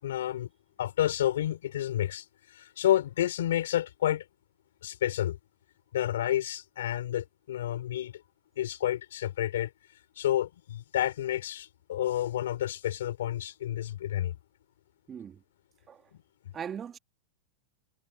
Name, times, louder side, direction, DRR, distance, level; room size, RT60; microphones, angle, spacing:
voice 1, 0.0-0.5 0.8-2.2 2.5-4.2 4.8-5.4 5.9-8.1 8.6-9.7 10.2-14.3, left 12 dB, 80° left, 3.8 m, -30 dB
voice 2, 15.1-15.4 15.9-16.0 16.5-17.0, right 8 dB, 25° right, 2.5 m, -39 dB
hypercardioid pair, 110°, 0 cm